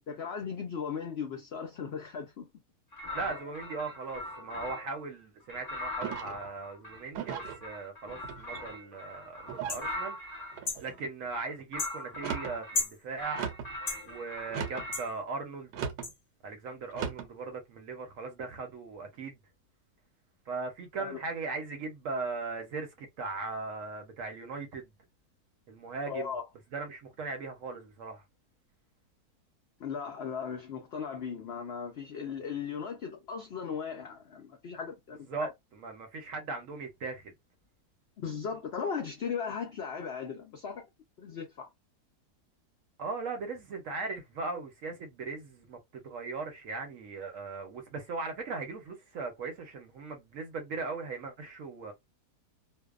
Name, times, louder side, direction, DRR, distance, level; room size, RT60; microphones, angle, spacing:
voice 1, 0.1-2.5 21.0-21.2 26.1-26.4 29.8-35.5 38.2-40.9 41.2-41.7, left 6 dB, 80° left, 0.5 m, -37 dB
sound 1, 2.9-5.0 5.5-10.6 11.3-12.9 13.2-15.1, left 1 dB, 20° left, 0.7 m, -41 dB
voice 2, 3.1-10.2 10.8-13.5 14.0-15.7 16.4-19.4 20.5-24.9 25.7-26.3 26.7-28.2 35.3-37.3 43.0-51.9, right 4 dB, 65° right, 0.9 m, -38 dB
sound 2, 6.0-6.5 7.1-7.6 8.2-8.8 9.5-9.9 10.5-11.0 12.1-12.6 13.3-13.7 14.5-14.9 15.7-16.1 16.9-17.3, right 8 dB, 80° right, 1.2 m, -37 dB
sound 3, 9.7-9.9 10.7-10.8 11.8-12.0 12.7-13.0 13.9-14.0 14.9-15.1 16.0-16.1, left 4 dB, 45° left, 0.8 m, -32 dB
2.6 x 2.1 x 2.3 m
omnidirectional pair, 1.7 m